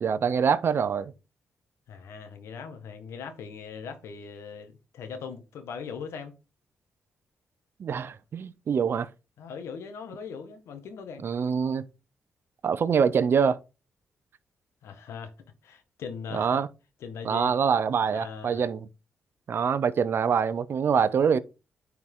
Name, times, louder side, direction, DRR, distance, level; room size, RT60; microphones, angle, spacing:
voice 1, 0.0-1.1 7.8-9.1 11.2-11.8 12.6-13.6 16.3-16.7 17.2-18.9 19.5-21.4, right 6 dB, 60° right, 0.7 m, -25 dB
voice 2, 1.9-6.3 9.4-11.3 14.8-15.3 15.6-16.6 17.0-17.6 18.1-18.6, left 6 dB, 85° left, 1.6 m, -40 dB
9.7 x 4.6 x 3.8 m
cardioid pair, 80°, 5 cm